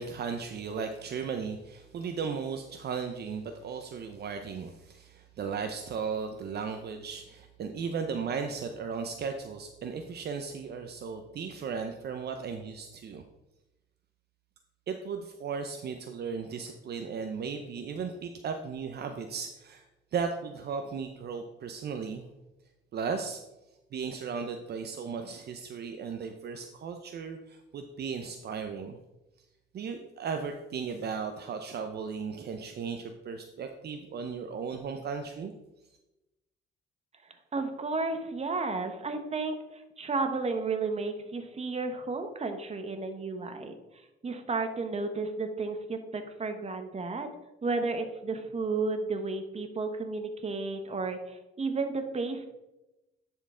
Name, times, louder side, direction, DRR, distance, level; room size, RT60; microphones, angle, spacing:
voice 1, 0.0-13.2 14.9-19.8 20.1-22.3 22.9-23.4 23.9-29.0 29.7-35.5, right 5 dB, 55° right, 6 dB, 0.6 m, -36 dB
voice 2, 37.5-43.7 44.2-47.3 47.6-52.5, right 3 dB, 30° right, 7 dB, 1.1 m, -32 dB
10.5 x 4.5 x 3.8 m, 0.99 s
cardioid pair, 90°, 20 cm